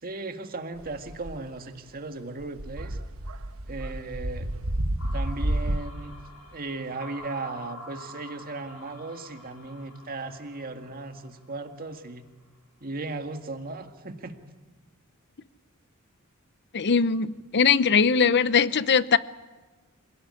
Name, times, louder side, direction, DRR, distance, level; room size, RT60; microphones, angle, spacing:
voice 1, 0.0-3.0 3.7-4.5 5.1-6.1 6.5-12.2 12.8-14.4, right 3 dB, 45° right, 1.9 m, -36 dB
sound 1, 0.8-1.4 2.4-5.8, right 1 dB, 70° right, 1.4 m, -30 dB
sound 2, 5.0-12.1, left 2 dB, 90° left, 5.8 m, -47 dB
voice 2, 16.7-19.2, left 6 dB, 55° left, 0.7 m, -21 dB
26.5 x 17.0 x 9.9 m
head